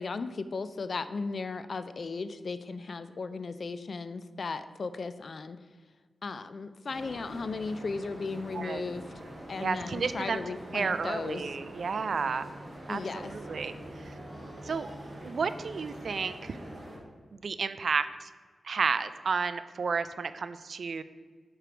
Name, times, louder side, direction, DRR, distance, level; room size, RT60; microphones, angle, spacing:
voice 1, 0.0-5.6 6.2-9.0 9.5-11.4 12.9-13.3, left 4 dB, 55° left, 12 dB, 0.3 m, -36 dB
sound 1, 6.9-17.0, right 1 dB, 30° right, 1.5 m, -44 dB
voice 2, 9.6-10.4 10.7-12.5 12.9-13.7 14.6-14.9 15.2-16.6 17.4-18.3 18.7-21.0, right 5 dB, 70° right, 12 dB, 0.3 m, -31 dB
5.0 x 4.4 x 6.0 m, 1.5 s
wide cardioid pair, 110°, 0 cm